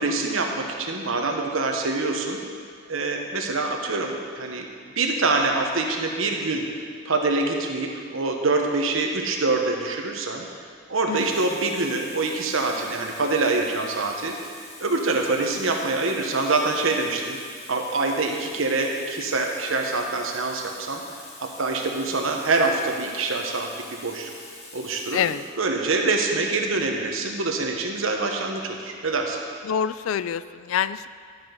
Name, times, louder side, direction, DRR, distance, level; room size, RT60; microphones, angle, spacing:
voice 1, 0.0-2.4 2.9-4.7 5.0-6.6 7.0-10.5 10.9-14.3 14.8-17.4 17.7-21.0 21.4-24.3 24.7-25.2 25.6-29.4, right 3 dB, 80° right, 2 dB, 1.1 m, -25 dB
Water tap faucet, 10.3-10.5 11.1-25.6 26.5-26.7, left 2 dB, 30° left, 1.3 m, -45 dB
voice 2, 25.1-25.4 29.6-31.1, left 8 dB, 85° left, 15 dB, 0.3 m, -26 dB
12.0 x 6.0 x 5.3 m, 2.1 s
head